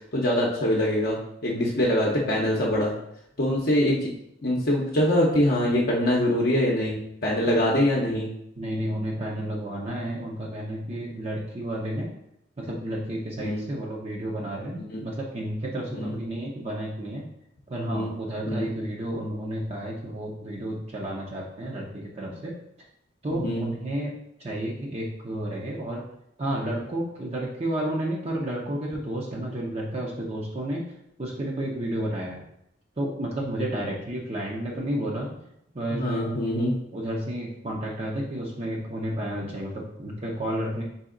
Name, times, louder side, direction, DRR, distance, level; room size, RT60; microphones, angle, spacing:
voice 1, 0.1-2.9 3.4-4.1 4.4-8.3 13.4-13.6 14.8-15.0 15.9-16.1 17.9-18.1 18.4-18.7 23.3-23.7 35.9-36.7, left 1 dB, 50° left, -3 dB, 0.7 m, -24 dB
voice 2, 8.6-12.1 12.6-17.2 17.7-22.5 23.2-24.1 24.4-26.1 26.4-30.9 31.2-32.4 33.0-35.3 35.7-36.3 36.9-40.8, right 1 dB, 30° right, -3 dB, 0.6 m, -31 dB
4.1 x 3.3 x 3.7 m, 0.78 s
head